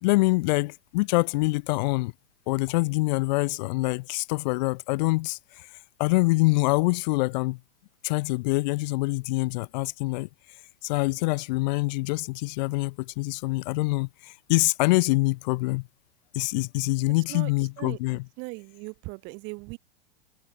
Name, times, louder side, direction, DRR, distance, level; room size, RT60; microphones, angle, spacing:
voice 1, 0.0-2.1 2.5-5.7 6.0-7.6 8.0-10.3 10.8-15.9 16.3-18.3, left 23 dB, 45° left, 4.1 m, -25 dB
voice 2, 18.4-19.8, right 29 dB, 40° right, 6.1 m, -38 dB
figure-of-eight pair, 100°, 30 cm